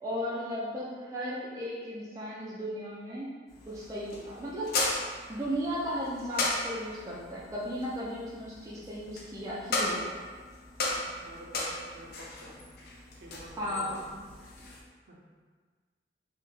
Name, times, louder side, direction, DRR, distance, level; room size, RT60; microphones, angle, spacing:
voice 1, 0.0-3.3 3.7-5.0 5.3-10.2 13.6-13.8, equal, 20° right, -7 dB, 0.4 m, -35 dB
sound 1, 3.5-14.8, left 2 dB, 55° left, 0.4 m, -36 dB
voice 2, 11.1-12.6 13.1-14.1 15.0-15.2, equal, 60° right, -3 dB, 0.6 m, -49 dB
2.7 x 2.1 x 3.7 m, 1.5 s
head